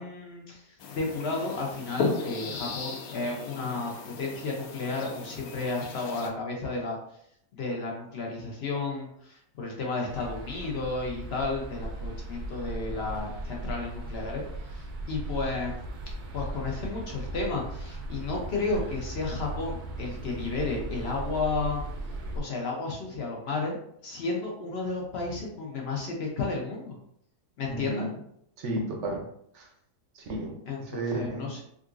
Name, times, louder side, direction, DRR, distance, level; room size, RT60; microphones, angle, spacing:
voice 1, 0.0-7.0 7.5-14.4 14.7-15.8 16.3-21.8 22.3-23.8 24.0-27.0 27.6-28.1 30.7-31.6, left 3 dB, 55° left, -1 dB, 0.7 m, -32 dB
sound 1, 0.8-6.3, left 3 dB, 75° left, 1.0 m, -36 dB
sound 2, 10.1-22.4, right 1 dB, 80° right, 1.1 m, -37 dB
voice 2, 27.7-28.1 28.6-29.3 29.5-29.7 30.1-30.6 30.9-31.5, right 1 dB, 60° right, 2 dB, 0.8 m, -32 dB
3.7 x 2.5 x 2.3 m, 0.71 s
omnidirectional pair, 1.6 m